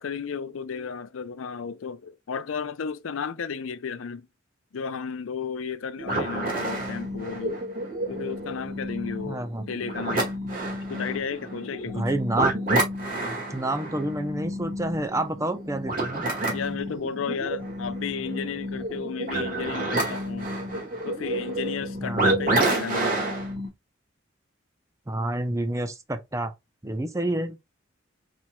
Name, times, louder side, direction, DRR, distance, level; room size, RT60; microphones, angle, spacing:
voice 1, 0.0-4.3 4.7-7.6 8.1-10.3 10.9-12.1 16.5-20.5 21.0-23.1, left 6 dB, 80° left, 0.5 m, -33 dB
sound 1, 6.0-23.7, right 1 dB, 45° right, 1.8 m, -29 dB
voice 2, 9.3-9.6 11.8-12.5 13.5-16.2 22.0-22.3 25.1-26.5 26.8-27.6, right 1 dB, 15° right, 0.5 m, -28 dB
4.5 x 4.3 x 2.2 m
head